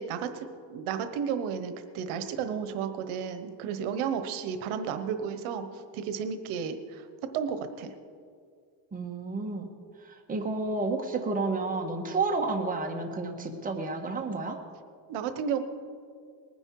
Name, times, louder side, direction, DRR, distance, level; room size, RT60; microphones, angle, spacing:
voice 1, 0.0-5.7 5.9-7.1 7.3-7.9 15.1-15.6, right 7 dB, 80° right, 9 dB, 1.1 m, -32 dB
voice 2, 8.9-9.7 10.0-14.6, right 3 dB, 15° right, 2 dB, 1.4 m, -31 dB
20.0 x 9.8 x 4.7 m, 2.2 s
cardioid pair, 135°, 48 cm